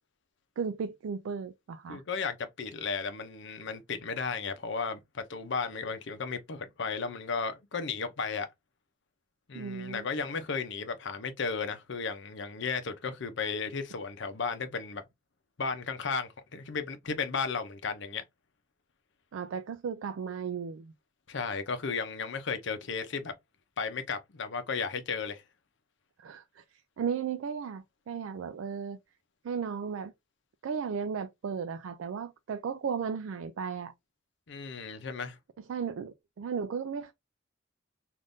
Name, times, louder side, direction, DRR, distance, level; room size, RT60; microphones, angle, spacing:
voice 1, 0.6-2.0 9.5-10.1 19.3-20.9 26.2-29.0 29.4-30.1 30.6-33.9 35.7-37.1, right 6 dB, 85° right, 0.4 m, -35 dB
voice 2, 1.9-8.5 9.5-15.0 15.6-18.2 21.3-23.3 23.8-25.4 34.5-35.4, left 5 dB, 65° left, 0.6 m, -34 dB
2.6 x 2.5 x 3.4 m
head